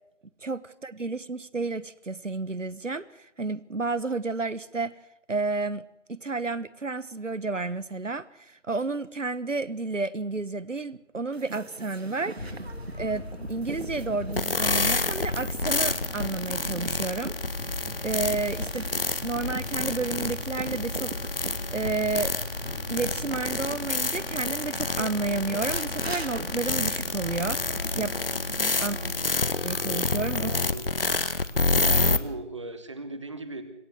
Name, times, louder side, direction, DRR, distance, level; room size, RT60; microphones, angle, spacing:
voice 1, 0.4-4.9 5.3-5.8 6.1-12.6 12.9-17.3 17.6-17.7 18.0-18.9 19.2-21.1 21.7-22.3 22.9-27.6 27.9-28.2 28.5-29.0 29.6-30.5, right 3 dB, 85° right, 18 dB, 1.3 m, -31 dB
sound 1, 11.3-28.8, right 3 dB, 55° right, 2.3 m, -42 dB
sound 2, 12.4-28.1, left 1 dB, 80° left, 3.1 m, -38 dB
sound 3, 14.3-32.2, left 3 dB, 50° left, 1.4 m, -28 dB
voice 2, 28.8-29.4 30.4-30.9 31.9-33.6, right 2 dB, 25° right, 10 dB, 1.6 m, -39 dB
26.0 x 14.5 x 8.1 m, 0.81 s
figure-of-eight pair, 165°, 37 cm